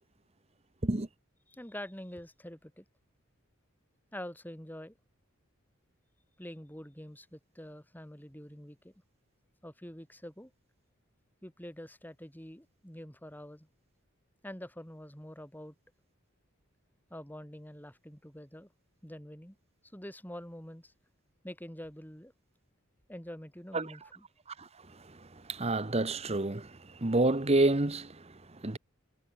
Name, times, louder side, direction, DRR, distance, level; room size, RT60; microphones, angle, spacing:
voice 1, 1.5-2.8 4.1-5.0 6.4-8.9 9.6-10.5 11.4-13.7 14.4-15.7 17.1-18.7 19.0-19.6 19.9-20.9 21.4-22.3 23.1-24.3, equal, 10° left, 5.1 m, -46 dB
voice 2, 25.5-28.8, right 2 dB, 30° right, 1.1 m, -29 dB
head